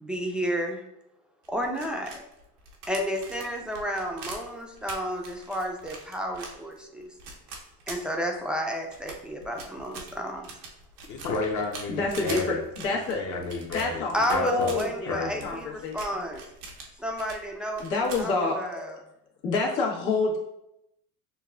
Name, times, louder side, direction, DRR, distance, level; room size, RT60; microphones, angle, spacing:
voice 1, 0.0-0.8 1.5-2.1 2.9-7.1 7.9-10.5 14.1-16.4 17.0-19.0, equal, ahead, 1 dB, 0.5 m, -31 dB
sound 1, 1.4-8.5 8.9-14.9 15.3-17.4 17.7-18.3, right 3 dB, 90° right, 0.9 m, -43 dB
voice 2, 11.1-12.6 12.9-14.7 15.1-15.5, left 3 dB, 40° left, 0 dB, 0.9 m, -31 dB
voice 3, 12.0-12.5 12.8-13.2 13.7-14.1 14.4-16.0 17.8-18.6 19.4-20.4, left 3 dB, 75° left, -2 dB, 1.3 m, -27 dB
6.7 x 2.3 x 2.4 m, 0.83 s
supercardioid pair, 100°, 43 cm